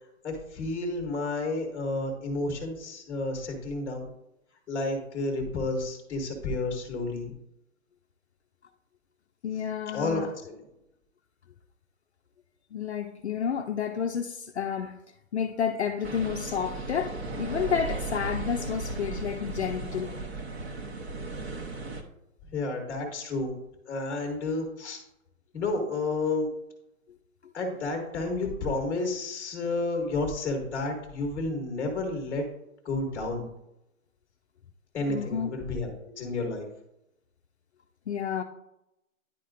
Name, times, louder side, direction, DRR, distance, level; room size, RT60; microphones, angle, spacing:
voice 1, 0.2-4.1 4.7-7.3 9.9-10.6 22.5-23.5 23.9-25.0 25.5-26.5 27.5-32.4 32.8-33.4 34.9-36.7, left 2 dB, 5° left, 0.9 m, -31 dB
voice 2, 9.4-10.3 12.7-15.0 15.3-20.2 27.4-27.5 35.1-35.5 38.1-38.4, left 7 dB, 55° left, 0.5 m, -30 dB
sound 1, 16.0-22.0, right 2 dB, 50° right, 0.9 m, -36 dB
10.0 x 4.1 x 2.5 m
hypercardioid pair, 160°, 41 cm